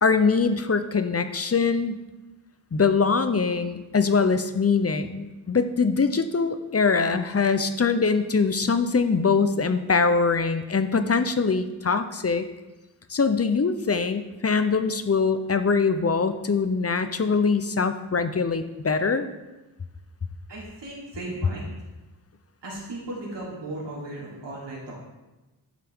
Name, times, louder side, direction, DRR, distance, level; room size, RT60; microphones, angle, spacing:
voice 1, 0.0-2.0 2.7-12.5 13.1-19.3, left 4 dB, 35° left, 10 dB, 0.7 m, -23 dB
voice 2, 20.5-21.7 22.6-24.9, right 1 dB, 90° right, -5 dB, 3.4 m, -36 dB
11.5 x 7.4 x 3.7 m, 1.1 s
wide cardioid pair, 70°, 42 cm